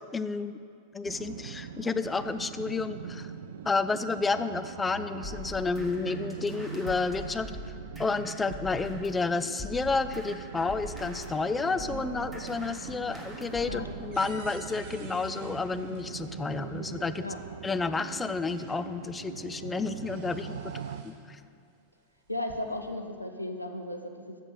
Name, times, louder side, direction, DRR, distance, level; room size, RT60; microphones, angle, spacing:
voice 1, 0.1-0.6 0.9-3.3 3.7-7.5 8.0-17.2 17.6-21.4, left 4 dB, 15° left, 11 dB, 0.3 m, -31 dB
sound 1, 1.0-21.0, right 7 dB, 60° right, 0.3 m, -42 dB
sound 2, 5.2-9.2 9.6-14.0, left 1 dB, 5° right, 1.2 m, -43 dB
sound 3, 11.7-12.4 12.7-16.7 17.8-17.9 18.3-19.2 19.6-21.2 22.2-23.0, right 2 dB, 40° right, 1.2 m, -52 dB
voice 2, 22.3-24.4, left 1 dB, 85° left, 5 dB, 0.6 m, -35 dB
7.2 x 6.6 x 6.2 m, 2.3 s
figure-of-eight pair, 90°, 0 cm